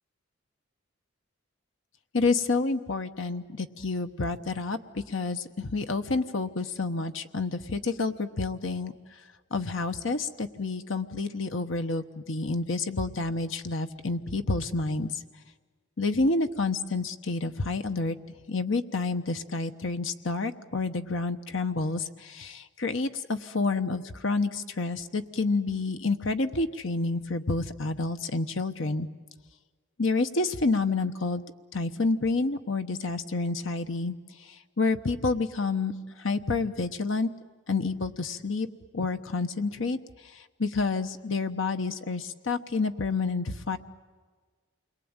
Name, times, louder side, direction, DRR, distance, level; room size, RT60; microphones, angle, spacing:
voice 1, 2.1-9.2 9.5-15.2 16.0-18.2 18.5-29.1 30.0-31.4 31.7-37.3 37.7-38.7 38.9-40.0 40.2-43.8, left 3 dB, 65° left, 8 dB, 1.1 m, -29 dB
28.5 x 22.5 x 8.9 m, 1.4 s
head